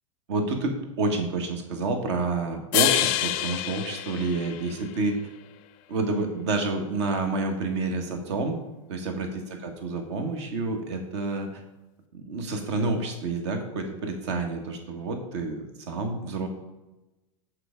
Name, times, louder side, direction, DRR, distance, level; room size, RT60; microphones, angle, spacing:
voice 1, 0.3-5.2 5.9-8.6 8.9-11.6 12.1-16.5, right 3 dB, 55° right, 4 dB, 1.4 m, -29 dB
sound 1, 2.7-5.1, left 14 dB, 45° left, 0.5 m, -27 dB
8.3 x 4.6 x 5.0 m, 1.0 s
figure-of-eight pair, 85°, 17 cm